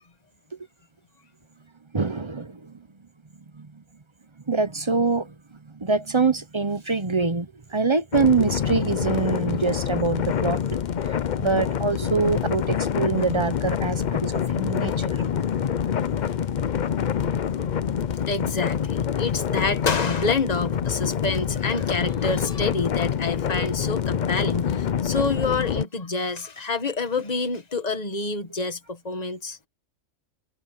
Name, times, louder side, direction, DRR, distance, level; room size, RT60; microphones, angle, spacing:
voice 1, 1.9-2.8 3.6-3.7 4.5-5.3 5.7-10.6 11.4-15.2, right 4 dB, 30° right, 0.6 m, -24 dB
sound 1, 8.1-25.8, left 8 dB, 50° left, 0.6 m, -26 dB
voice 2, 18.3-29.6, left 3 dB, 30° left, 1.7 m, -27 dB
omnidirectional pair, 1.4 m